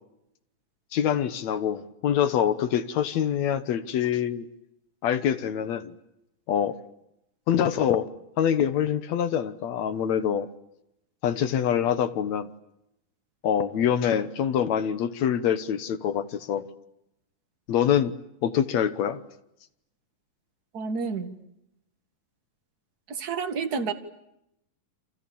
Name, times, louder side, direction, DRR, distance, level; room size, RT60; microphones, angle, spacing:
voice 1, 0.9-4.5 5.0-5.9 6.5-6.8 7.5-8.1 8.4-10.5 11.2-12.5 13.4-16.6 17.7-18.2 18.4-19.2, left 9 dB, 65° left, 1.9 m, -25 dB
voice 2, 20.7-21.3 23.1-23.9, right 5 dB, 35° right, 1.6 m, -29 dB
29.5 x 27.0 x 7.1 m
omnidirectional pair, 4.3 m